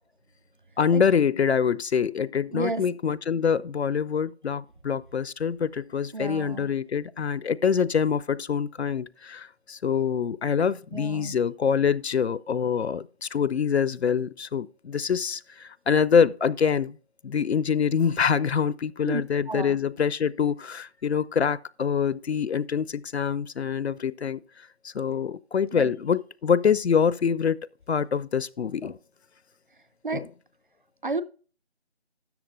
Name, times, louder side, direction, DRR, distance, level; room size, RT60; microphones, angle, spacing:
voice 1, 0.8-17.0 17.2-27.6 27.9-29.0 30.1-30.3, left 7 dB, 70° left, 0.5 m, -25 dB
voice 2, 2.5-2.8 6.1-6.7 10.9-11.3 19.1-19.2 19.5-19.8 25.7-25.9 30.0-30.2 31.0-31.2, right 3 dB, 50° right, 0.7 m, -31 dB
13.0 x 7.9 x 2.5 m
figure-of-eight pair, 170°, 33 cm